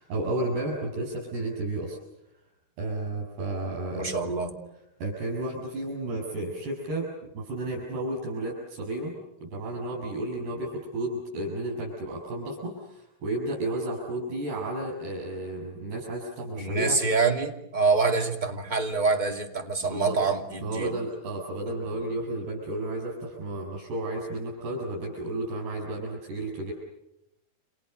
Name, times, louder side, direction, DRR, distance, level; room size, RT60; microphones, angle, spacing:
voice 1, 0.0-2.0 2.8-4.1 5.0-7.1 7.3-9.1 9.4-17.0 19.8-20.2 20.6-26.7, right 2 dB, 80° right, -4 dB, 9.4 m, -32 dB
voice 2, 3.9-4.5 16.6-20.9 21.7-21.8, right 4 dB, 15° right, 3 dB, 2.0 m, -26 dB
30.0 x 28.0 x 6.8 m, 0.87 s
omnidirectional pair, 4.6 m